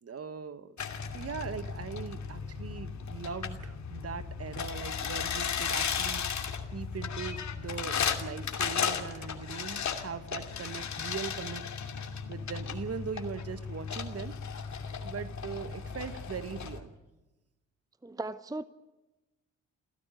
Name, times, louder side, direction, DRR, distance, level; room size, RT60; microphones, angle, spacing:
voice 1, 0.0-11.7 12.3-14.4 15.0-16.9, right 6 dB, 45° right, 12 dB, 1.8 m, -40 dB
sound 1, 0.8-16.8, left 6 dB, 50° left, 2.7 m, -35 dB
voice 2, 18.0-18.6, right 2 dB, 10° right, 14 dB, 0.9 m, -37 dB
28.5 x 15.0 x 9.3 m, 1.1 s
hypercardioid pair, 50°, 35 cm